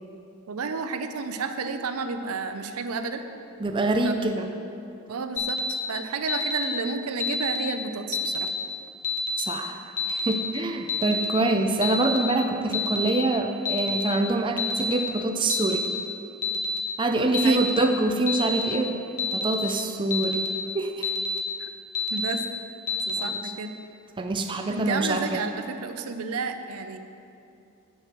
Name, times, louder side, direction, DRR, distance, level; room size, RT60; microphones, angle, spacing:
voice 1, 0.5-3.2 4.0-4.2 5.1-8.5 17.4-17.6 21.6-21.7 22.1-22.4 23.1-23.7 24.7-27.0, right 4 dB, 85° right, 8 dB, 0.6 m, -31 dB
voice 2, 3.6-4.5 9.4-9.8 10.1-15.8 17.0-19.0 19.3-20.5 20.7-21.1 24.2-25.4, right 2 dB, 20° right, 4 dB, 0.4 m, -25 dB
Alarm, 5.4-5.7 6.3-6.6 7.2-7.6 8.1-8.5 9.0-9.4 10.0-10.3 10.9-11.3 11.8-12.2 12.7-13.1 13.7-14.0 14.6-14.9 15.5-15.9 16.4-16.8 17.3-17.7 18.3-18.6 19.2-19.5 20.1-20.5 21.0-21.4 22.0-22.3 22.9-23.2, left 3 dB, 35° left, 0.9 m, -28 dB
6.4 x 6.2 x 7.5 m, 2.7 s
head